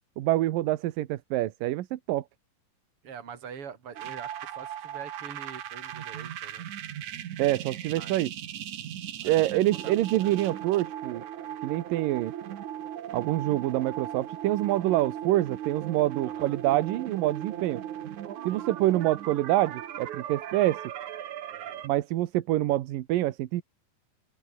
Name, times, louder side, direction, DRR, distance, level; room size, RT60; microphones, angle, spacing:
voice 1, 0.2-2.2 7.4-8.3 9.2-11.2 11.6-12.3 13.1-17.8 18.4-20.8 21.8-23.6, right 15 dB, 80° right, 2.7 m, -26 dB
voice 2, 3.0-6.6 8.0-8.2 9.2-9.9 10.2-10.3 16.2-16.6 18.5-18.7 21.5-21.8, right 7 dB, 40° right, 4.0 m, -44 dB
sound 1, 4.0-21.9, right 11 dB, 60° right, 2.8 m, -38 dB
open air
omnidirectional pair, 4.0 m